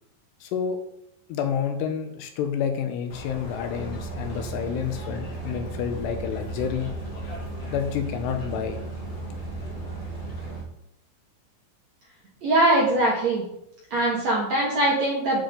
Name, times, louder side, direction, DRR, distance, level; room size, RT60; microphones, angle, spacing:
voice 1, 0.4-0.8 1.3-6.9 7.7-8.8, left 8 dB, 80° left, 6 dB, 2.6 m, -29 dB
sound 1, 3.1-10.6, left 3 dB, 60° left, 1.4 m, -39 dB
sound 2, 3.7-10.7, right 5 dB, 80° right, 2.0 m, -36 dB
voice 2, 12.4-13.4 13.9-15.4, right 1 dB, 55° right, -4 dB, 2.0 m, -22 dB
8.9 x 7.2 x 3.8 m, 0.79 s
omnidirectional pair, 5.2 m